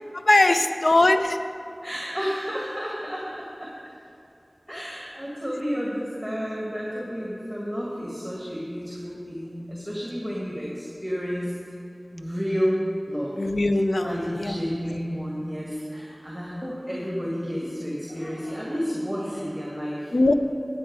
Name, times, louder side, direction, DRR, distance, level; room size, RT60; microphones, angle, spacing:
voice 1, 0.1-1.4 13.4-14.6 20.1-20.3, left 2 dB, 75° left, 8 dB, 0.5 m, -20 dB
voice 2, 1.8-3.7 4.7-11.6 12.1-13.3 14.0-20.2, equal, ahead, -4 dB, 2.0 m, -31 dB
10.0 x 9.2 x 4.7 m, 2.7 s
wide cardioid pair, 45°, 0 cm